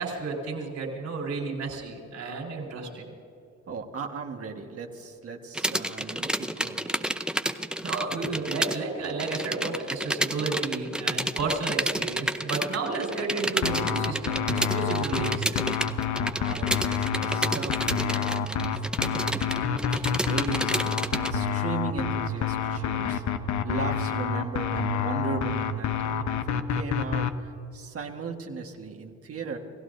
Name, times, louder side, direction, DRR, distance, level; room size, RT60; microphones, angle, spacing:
voice 1, 0.0-3.1 7.8-15.6, right 4 dB, 70° right, 0 dB, 4.5 m, -32 dB
voice 2, 3.7-6.9 16.4-20.6 21.1-23.2 23.6-27.3 27.7-29.6, right 5 dB, 50° right, 3 dB, 1.6 m, -37 dB
sound 1, 5.5-8.8 9.0-21.3, right 1 dB, 5° right, 0.6 m, -30 dB
sound 2, 13.6-27.3, left 7 dB, 70° left, 1.0 m, -28 dB
29.0 x 16.0 x 2.7 m, 2.9 s
cardioid pair, 90°, 30 cm